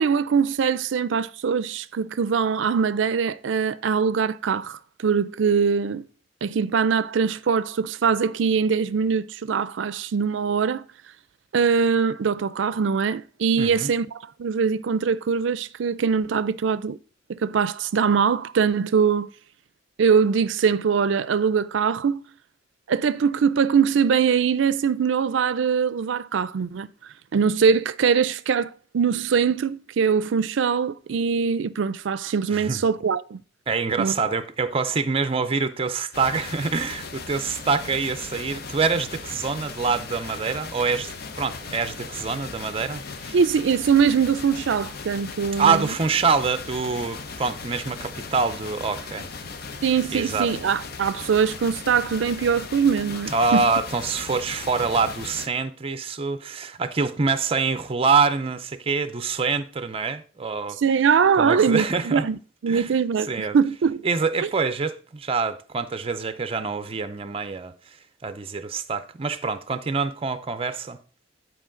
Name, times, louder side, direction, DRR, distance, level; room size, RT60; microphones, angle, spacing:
voice 1, 0.0-6.1 6.4-10.9 11.5-17.0 17.3-19.3 20.0-22.2 22.9-26.9 27.3-33.4 34.0-34.1 43.3-45.9 49.8-53.6 60.8-64.0, right 6 dB, 80° right, 0.4 m, -22 dB
voice 2, 13.6-13.9 32.5-32.8 33.7-41.1 41.4-43.4 45.6-49.3 50.1-50.5 53.3-60.8 61.4-62.3 62.7-62.9 63.3-63.6 64.0-68.0 68.2-71.0, right 4 dB, 30° right, 0.5 m, -25 dB
sound 1, 36.1-55.5, left 4 dB, 55° left, 0.7 m, -37 dB
9.9 x 4.7 x 3.8 m
head